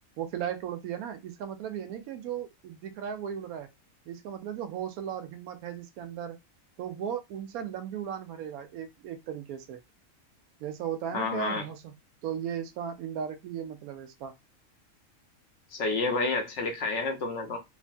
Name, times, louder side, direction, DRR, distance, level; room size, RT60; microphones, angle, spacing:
voice 1, 0.2-3.7 4.1-6.4 6.8-9.8 10.6-11.9 12.2-14.3, right 9 dB, 85° right, 1.1 m, -36 dB
voice 2, 11.1-11.6 15.7-17.6, left 3 dB, 65° left, 0.8 m, -29 dB
3.1 x 2.2 x 2.5 m
omnidirectional pair, 1.5 m